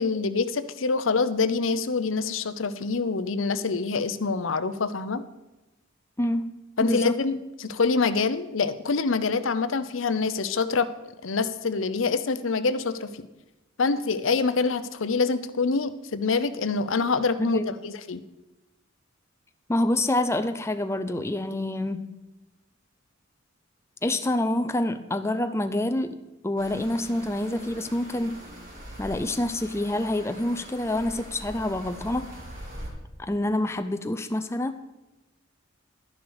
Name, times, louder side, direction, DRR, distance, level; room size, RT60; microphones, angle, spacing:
voice 1, 0.0-5.2 6.8-10.9 11.2-13.3 13.8-18.2, left 4 dB, 75° left, 12 dB, 0.7 m, -26 dB
voice 2, 6.2-6.5 6.8-7.2 17.4-17.8 19.7-22.1 24.0-28.4 29.0-32.3 33.2-34.8, left 1 dB, 15° left, 9 dB, 0.5 m, -27 dB
sound 1, 26.6-32.9, equal, 45° right, 3.2 m, -42 dB
12.0 x 10.5 x 4.8 m, 1.1 s
head